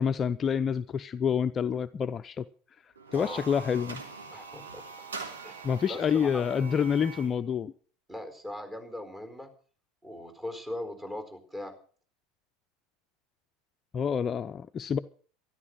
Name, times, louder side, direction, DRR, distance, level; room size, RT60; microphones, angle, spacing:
voice 1, 0.0-2.5 3.1-4.0 5.6-7.7 13.9-15.0, left 7 dB, 35° left, 12 dB, 0.6 m, -28 dB
sound 1, 3.0-7.4, right 4 dB, 85° right, 3.1 m, -43 dB
voice 2, 3.1-3.5 4.3-4.8 5.4-6.8 8.1-9.5 10.0-11.8, left 1 dB, 15° right, 8 dB, 4.3 m, -40 dB
13.5 x 12.5 x 6.3 m, 0.43 s
hypercardioid pair, 80°, 0 cm